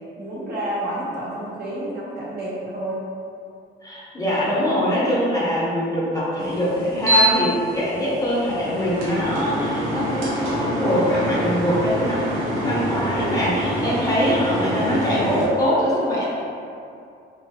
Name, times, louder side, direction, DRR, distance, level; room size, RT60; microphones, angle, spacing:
voice 1, 0.2-3.0, right 1 dB, 55° right, -8 dB, 1.1 m, -29 dB
voice 2, 3.8-12.2 12.6-16.2, equal, 15° left, -8 dB, 0.7 m, -23 dB
sound 1, 6.4-15.5, right 1 dB, 85° right, 0.7 m, -25 dB
3.0 x 2.3 x 2.8 m, 2.5 s
cardioid pair, 90°, 20 cm